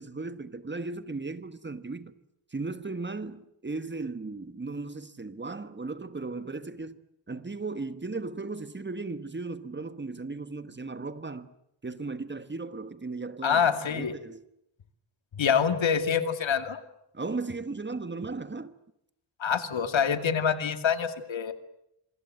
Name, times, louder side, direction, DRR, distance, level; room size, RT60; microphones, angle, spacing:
voice 1, 0.0-2.1 2.5-7.0 7.3-11.5 11.8-14.4 17.1-18.7, right 3 dB, 25° right, 1.3 m, -36 dB
voice 2, 13.4-14.1 15.3-16.8 19.4-21.5, left 7 dB, 85° left, 2.4 m, -26 dB
27.0 x 24.5 x 7.8 m
wide cardioid pair, 130°, 45 cm